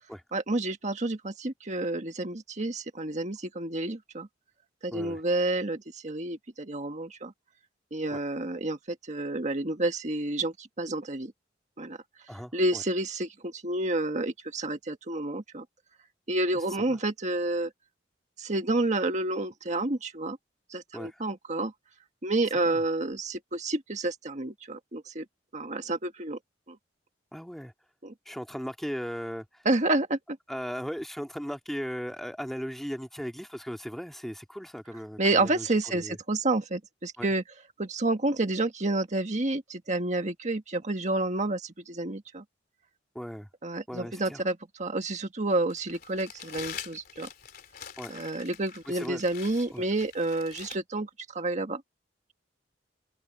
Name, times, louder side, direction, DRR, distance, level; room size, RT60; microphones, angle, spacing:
voice 1, 0.3-4.3 4.8-7.3 7.9-11.3 11.8-12.0 12.5-15.6 16.3-17.7 18.4-20.4 20.7-21.7 22.2-25.2 25.5-26.4 26.7-26.8 28.0-28.1 29.6-30.2 35.2-37.4 37.8-42.4 43.6-47.3 48.1-51.8, right 2 dB, 40° right, 1.6 m, -29 dB
voice 2, 4.9-5.2 12.3-12.8 16.9-17.0 20.9-21.2 22.7-22.8 27.3-27.7 28.3-29.5 30.5-35.7 35.9-36.2 37.2-37.3 43.1-43.5 43.9-44.4 48.0-48.1 48.9-49.2 49.7-49.8, equal, ahead, 2.1 m, -37 dB
Crumpling crinkling, 45.7-50.8, left 8 dB, 55° left, 3.3 m, -44 dB
open air
head